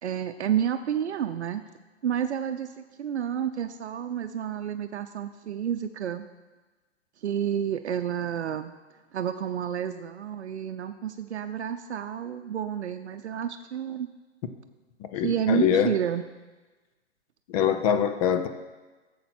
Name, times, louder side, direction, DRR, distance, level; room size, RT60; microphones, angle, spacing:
voice 1, 0.0-1.6 2.0-6.3 7.2-8.7 9.1-14.1 15.2-16.2, right 9 dB, 80° right, 8 dB, 0.6 m, -30 dB
voice 2, 15.1-15.9 17.5-18.5, left 8 dB, 35° left, 9 dB, 0.6 m, -24 dB
12.0 x 7.5 x 4.4 m, 1.2 s
hypercardioid pair, 130°, 33 cm